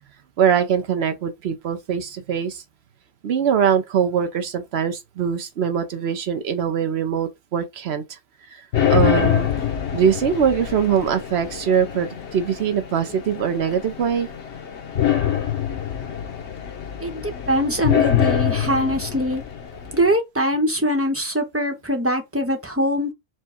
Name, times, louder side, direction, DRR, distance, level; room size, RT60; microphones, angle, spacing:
voice 1, 0.4-2.6 3.2-8.2 8.5-9.5 9.9-14.3 18.6-18.8, right 8 dB, 75° right, 1.0 m, -22 dB
sound 1, 8.7-20.1, left 9 dB, 85° left, 1.2 m, -25 dB
voice 2, 17.0-19.4 19.9-23.1, equal, 15° right, 0.9 m, -22 dB
4.6 x 2.2 x 4.2 m
omnidirectional pair, 1.1 m